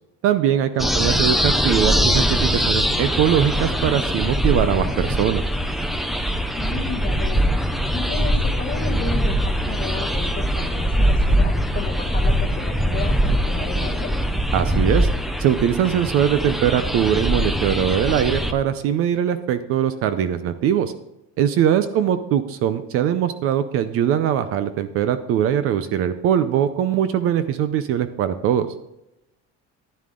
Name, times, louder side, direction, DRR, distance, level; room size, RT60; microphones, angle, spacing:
voice 1, 0.2-5.4 14.5-15.1 15.4-20.9 21.4-28.7, right 9 dB, 45° right, 12 dB, 0.6 m, -21 dB
voice 2, 0.8-1.1 6.5-7.5 7.9-14.1 21.9-22.2, left 6 dB, 30° left, 3 dB, 1.5 m, -33 dB
sound 1, 0.8-18.5, equal, ahead, 0.3 m, -22 dB
11.0 x 10.5 x 3.7 m, 0.88 s
cardioid pair, 175°, 30 cm